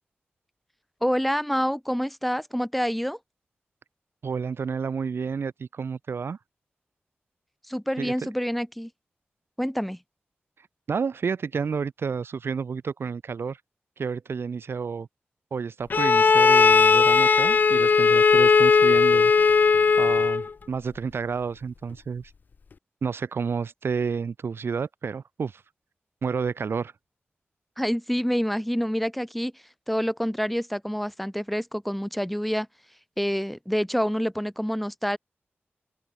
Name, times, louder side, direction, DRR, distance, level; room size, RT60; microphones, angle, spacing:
voice 1, 1.0-3.2 7.7-8.9 9.6-10.0 27.8-32.7 33.2-35.2, equal, ahead, 2.7 m, -27 dB
voice 2, 4.2-6.4 8.0-8.1 10.9-13.6 14.0-15.1 15.5-19.3 20.0-22.3 23.0-25.6 26.2-26.9, right 5 dB, 70° right, 3.0 m, -30 dB
Bowed string instrument, 15.9-20.5, left 5 dB, 45° left, 0.4 m, -18 dB
open air
wide cardioid pair, 145°, 4 cm